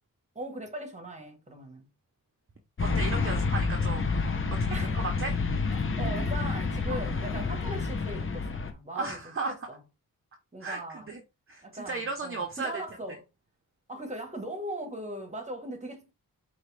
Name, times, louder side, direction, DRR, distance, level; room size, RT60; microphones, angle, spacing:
voice 1, 0.3-1.9 4.7-5.0 5.7-9.8 10.5-11.1 11.6-13.3 13.9-16.1, right 1 dB, 20° right, 1.3 m, -39 dB
sound 1, 2.8-8.7, left 4 dB, 35° left, 0.9 m, -29 dB
voice 2, 2.8-4.1 4.6-5.3 6.9-7.0 8.9-9.5 10.6-10.8 11.1-11.2 11.5-12.8, right 3 dB, 35° right, 0.8 m, -35 dB
4.6 x 2.8 x 3.3 m
cardioid pair, 70°, 35 cm